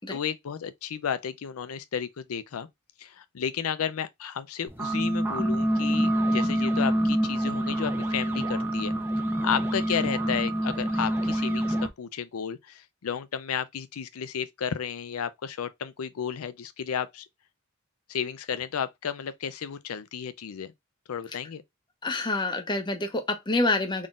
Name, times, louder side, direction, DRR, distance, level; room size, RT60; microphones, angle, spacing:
voice 1, 0.1-2.7 3.0-8.9 9.4-17.2 18.1-20.7 21.1-21.6, left 7 dB, 85° left, 0.5 m, -33 dB
sound 1, 4.7-11.9, right 1 dB, 10° right, 0.7 m, -26 dB
voice 2, 22.0-24.1, left 2 dB, 20° left, 0.8 m, -27 dB
3.8 x 3.7 x 2.4 m
head